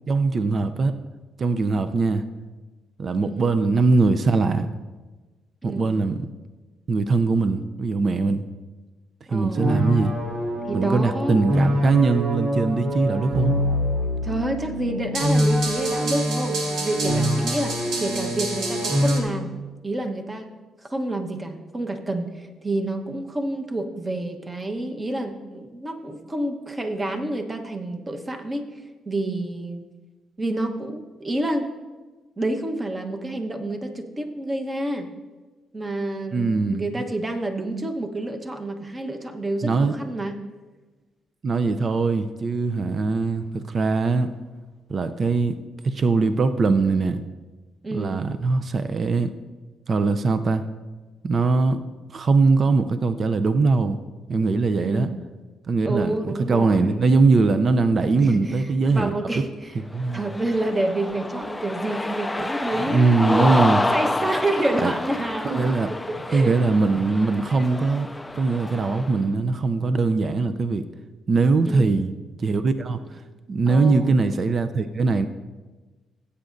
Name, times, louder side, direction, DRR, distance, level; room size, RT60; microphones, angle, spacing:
voice 1, 0.1-0.9 1.4-2.3 3.0-4.7 5.6-6.3 6.9-8.5 9.3-10.1 10.7-13.6 36.3-36.9 39.6-39.9 41.4-44.3 44.9-45.6 45.8-47.2 47.9-49.3 49.9-50.6 51.2-51.8 52.1-54.0 54.3-55.1 55.7-59.1 59.9-60.2 62.8-63.9 64.8-64.9 65.4-65.9 66.3-68.1 68.3-70.9 71.3-72.1 72.4-73.0 73.5-75.3, right 3 dB, 45° right, 10 dB, 0.5 m, -21 dB
voice 2, 3.2-3.6 5.6-5.9 9.3-9.7 10.7-11.7 14.2-19.5 19.8-20.5 20.8-29.8 30.4-31.7 32.4-35.1 35.7-40.4 47.8-48.2 54.7-55.2 55.8-57.0 58.2-59.8 60.1-63.4 63.9-66.5 68.9-69.1 71.7-72.1 73.7-74.1, right 1 dB, 25° right, 5 dB, 1.1 m, -29 dB
sound 1, 9.6-19.2, equal, 75° right, 1.7 m, -24 dB
Cheering, 59.9-69.2, left 2 dB, 10° left, 0.4 m, -28 dB
16.0 x 8.3 x 2.6 m, 1.3 s
cardioid pair, 90°, 0 cm